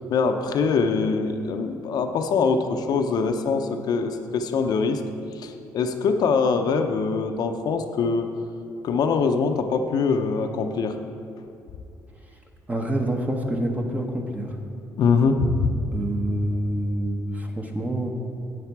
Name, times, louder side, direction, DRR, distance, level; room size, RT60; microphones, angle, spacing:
voice 1, 0.1-5.0 5.4-8.3 8.8-11.0 15.0-15.7, left 5 dB, 65° left, 6 dB, 0.7 m, -23 dB
voice 2, 12.7-14.6 15.9-18.1, right 1 dB, 20° right, 2 dB, 1.0 m, -27 dB
9.5 x 8.2 x 4.7 m, 2.6 s
cardioid pair, 85°, 7 cm